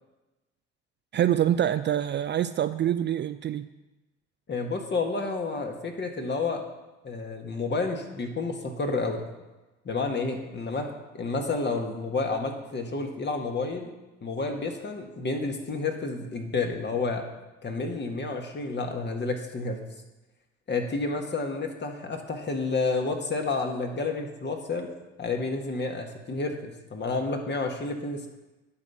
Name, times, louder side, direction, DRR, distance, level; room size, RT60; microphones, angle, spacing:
voice 1, 1.1-3.7, right 11 dB, 35° right, 11 dB, 0.4 m, -25 dB
voice 2, 4.5-6.6 7.0-9.3 9.8-10.9 11.1-13.9 14.2-17.2 17.6-19.8 20.7-24.9 25.2-28.3, left 3 dB, 35° left, 3 dB, 1.6 m, -30 dB
10.5 x 4.1 x 7.1 m, 1.1 s
supercardioid pair, 70°, 31 cm